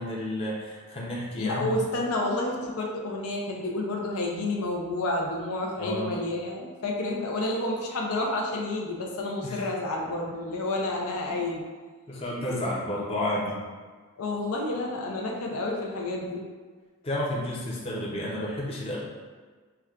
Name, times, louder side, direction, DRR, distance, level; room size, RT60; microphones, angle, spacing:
voice 1, 0.0-1.7 5.8-6.1 9.4-9.7 12.1-13.6 17.0-19.0, left 1 dB, 25° left, -5 dB, 0.6 m, -31 dB
voice 2, 1.4-11.6 14.2-16.4, left 2 dB, 75° left, -1 dB, 0.5 m, -30 dB
5.8 x 2.2 x 2.4 m, 1.5 s
head